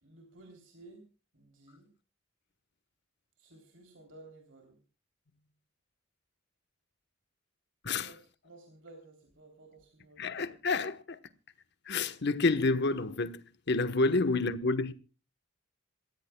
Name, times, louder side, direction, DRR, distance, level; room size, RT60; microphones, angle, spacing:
voice 1, 0.0-1.9 3.4-4.8 7.9-10.3, right 2 dB, 65° right, 3.3 m, -55 dB
voice 2, 7.8-8.1 10.2-11.2 11.8-14.9, left 3 dB, 55° left, 1.1 m, -29 dB
27.0 x 15.0 x 2.3 m
head